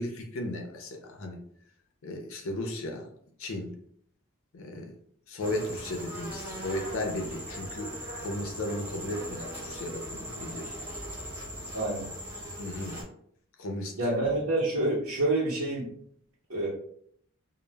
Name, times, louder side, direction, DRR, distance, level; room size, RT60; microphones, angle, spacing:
voice 1, 0.0-1.4 2.0-3.1 3.4-3.7 4.5-4.9 5.3-10.8 12.6-13.0 13.6-13.9, left 1 dB, 70° left, 2 dB, 0.5 m, -35 dB
sound 1, 5.4-13.0, equal, 10° right, 0.6 m, -39 dB
voice 2, 14.0-15.9 16.5-16.7, right 2 dB, 80° right, -8 dB, 0.8 m, -27 dB
2.1 x 2.1 x 3.3 m, 0.66 s
head